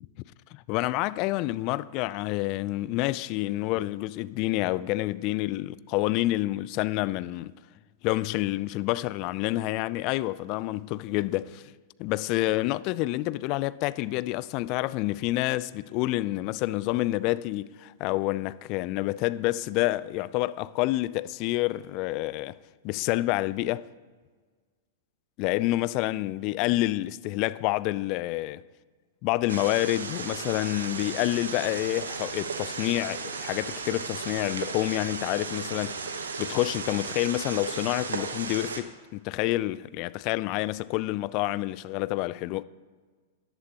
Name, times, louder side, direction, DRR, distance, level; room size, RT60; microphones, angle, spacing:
voice 1, 0.5-7.5 8.0-11.7 12.0-22.6 22.8-23.9 25.4-28.6 29.2-42.6, left 18 dB, 45° left, 0.4 m, -28 dB
sound 1, 29.5-38.8, right 5 dB, 75° right, 1.0 m, -35 dB
14.0 x 11.0 x 2.9 m
figure-of-eight pair, 105°, 0 cm